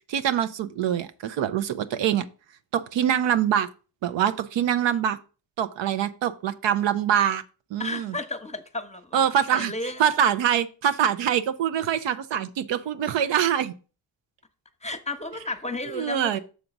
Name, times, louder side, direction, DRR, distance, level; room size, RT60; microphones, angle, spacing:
voice 1, 0.1-2.3 2.7-3.7 4.0-5.2 5.6-7.4 7.7-8.1 9.1-9.7 10.0-13.7 15.8-16.4, right 9 dB, 80° right, 0.7 m, -24 dB
voice 2, 7.8-10.1 14.8-16.4, left 2 dB, 15° left, 0.9 m, -33 dB
6.7 x 3.9 x 5.9 m
cardioid pair, 95°, 43 cm